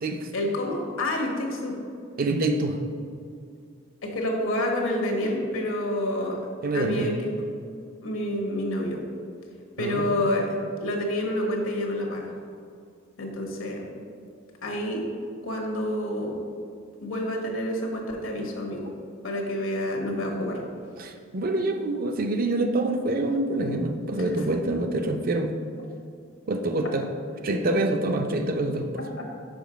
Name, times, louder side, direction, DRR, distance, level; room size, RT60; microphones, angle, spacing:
voice 1, 0.3-1.7 4.0-6.4 6.7-7.3 8.0-9.0 9.8-10.5 10.8-12.3 13.2-13.9 14.6-15.0 15.4-16.4 17.0-18.9 19.2-20.6 24.3-24.5, left 1 dB, 80° left, 1 dB, 1.2 m, -28 dB
voice 2, 2.2-2.8 6.6-7.1 9.8-10.2 21.0-25.5 26.5-27.1 27.4-28.9, right 2 dB, 45° right, 6 dB, 0.5 m, -26 dB
5.2 x 5.0 x 5.1 m, 2.3 s
head